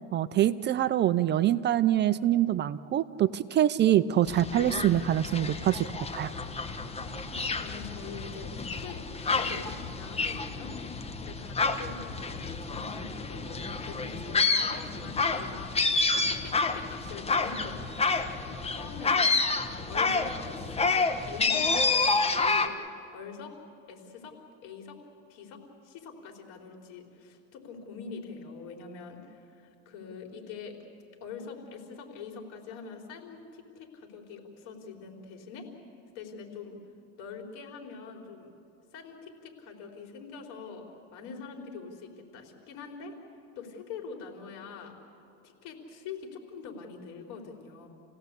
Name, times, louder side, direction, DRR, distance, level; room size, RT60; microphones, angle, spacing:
voice 1, 0.1-5.9 6.1-6.3, right 12 dB, 30° right, 14 dB, 0.5 m, -25 dB
sound 1, 4.3-22.7, left 4 dB, 20° left, 1.3 m, -29 dB
voice 2, 7.3-10.7 11.0-15.7 16.1-19.3 19.9-22.7 23.1-23.5 23.9-24.3 24.6-25.0 25.3-30.9 31.2-35.7 36.1-36.8 37.2-38.5 38.9-40.8 41.1-43.2 43.5-44.9 45.4-47.9, left 5 dB, 65° left, 2 dB, 4.1 m, -44 dB
28.5 x 17.0 x 8.4 m, 2.7 s
supercardioid pair, 120°, 33 cm